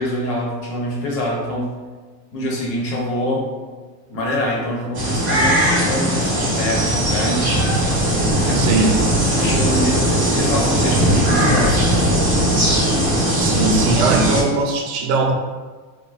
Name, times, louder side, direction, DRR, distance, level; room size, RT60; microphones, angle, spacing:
voice 1, 0.0-1.7 2.3-3.5 4.1-7.5 8.4-8.9 9.4-11.8 13.8-13.9, left 1 dB, 75° left, -2 dB, 1.0 m, -24 dB
sound 1, 4.9-14.4, equal, 5° right, 0.3 m, -18 dB
voice 2, 8.5-9.0 13.4-15.3, right 4 dB, 70° right, 2 dB, 0.6 m, -20 dB
3.5 x 2.1 x 2.3 m, 1.4 s
supercardioid pair, 165°, 48 cm